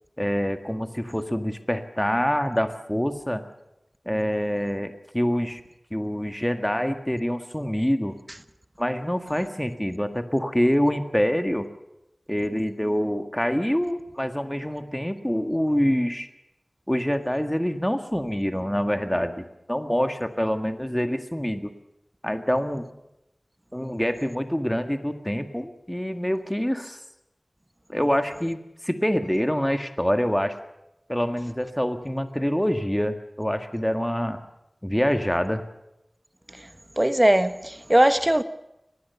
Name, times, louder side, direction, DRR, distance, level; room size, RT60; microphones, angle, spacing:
voice 1, 0.2-3.4 4.1-5.6 5.9-8.2 8.8-11.7 12.3-16.3 16.9-21.7 22.2-22.9 23.7-27.0 27.9-30.6 31.1-34.4 34.8-35.6, equal, 10° left, 1.8 m, -26 dB
voice 2, 37.0-38.4, right 1 dB, 25° right, 1.2 m, -19 dB
24.0 x 20.5 x 7.0 m
wide cardioid pair, 50°, 0 cm